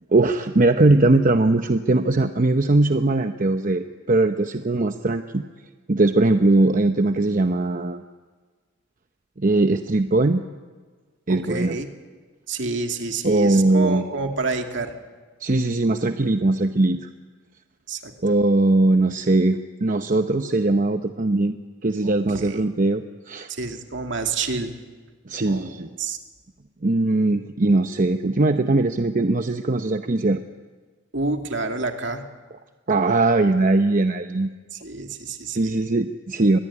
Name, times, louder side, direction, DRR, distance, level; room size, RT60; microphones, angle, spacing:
voice 1, 0.1-5.4 5.9-8.0 9.4-10.4 11.3-11.8 13.2-14.1 15.4-17.1 18.2-21.5 21.8-23.5 25.3-26.0 26.8-30.4 32.9-34.5 35.5-36.6, right 2 dB, 40° right, 7 dB, 0.8 m, -20 dB
voice 2, 11.3-11.9 12.5-14.9 17.9-18.1 22.0-22.6 23.5-24.7 25.5-25.7 26.0-26.2 31.1-32.2 34.7-35.8, right 3 dB, 65° right, 4 dB, 2.5 m, -28 dB
24.5 x 21.0 x 10.0 m, 1.4 s
head